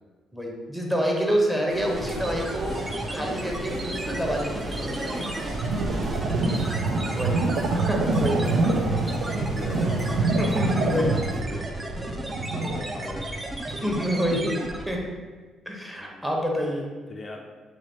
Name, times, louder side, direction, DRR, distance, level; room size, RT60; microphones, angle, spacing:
voice 1, 0.3-5.2 7.1-7.4 7.7-8.4 10.4-11.2 13.8-15.0 15.7-16.9, equal, 10° right, -1 dB, 0.9 m, -27 dB
sound 1, 1.7-11.4, right 1 dB, 45° right, 1.1 m, -36 dB
sound 2, 1.9-15.1, right 1 dB, 25° right, 0.5 m, -34 dB
voice 2, 5.1-5.5 6.8-7.0 8.6-9.9 11.2-12.1 12.4-13.4 16.0-16.3 16.7-16.8 17.1-17.5, left 2 dB, 40° left, 1 dB, 0.4 m, -41 dB
sound 3, 5.2-12.8, right 3 dB, 80° right, 0.3 m, -26 dB
3.1 x 3.0 x 4.1 m, 1.4 s
cardioid pair, 80°, 0 cm